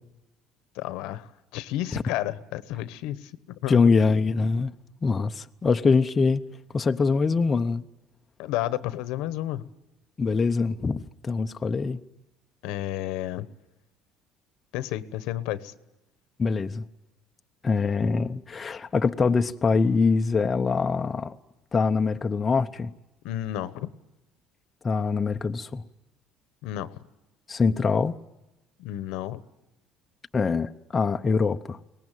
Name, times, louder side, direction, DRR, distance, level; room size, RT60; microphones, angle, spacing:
voice 1, 0.7-3.8 8.4-9.7 12.6-13.5 14.7-15.7 23.2-23.9 26.6-27.0 28.8-29.4, left 14 dB, 85° left, 1.2 m, -31 dB
voice 2, 3.7-4.7 5.0-6.5 6.7-7.8 10.2-12.0 16.4-16.8 17.6-21.4 21.7-22.9 24.8-25.8 27.5-28.1 30.3-31.8, left 4 dB, 25° left, 0.7 m, -24 dB
23.0 x 19.0 x 9.2 m
cardioid pair, 130°, 0 cm